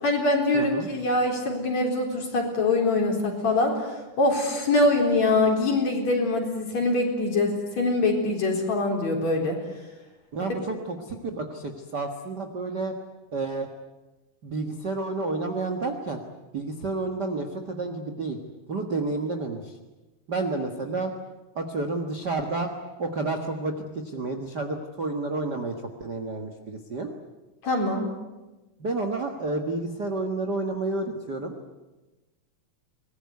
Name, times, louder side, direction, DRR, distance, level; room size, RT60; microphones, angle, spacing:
voice 1, 0.0-9.6 27.6-28.1, left 2 dB, 50° left, 2 dB, 5.3 m, -24 dB
voice 2, 0.5-0.9 10.3-12.9 13.3-13.7 14.4-16.2 16.5-18.4 18.7-19.8 20.3-21.1 21.5-22.7 23.0-25.7 26.0-27.2 28.8-31.6, right 3 dB, 40° right, 5 dB, 1.5 m, -30 dB
24.0 x 20.5 x 9.5 m, 1.1 s
omnidirectional pair, 3.9 m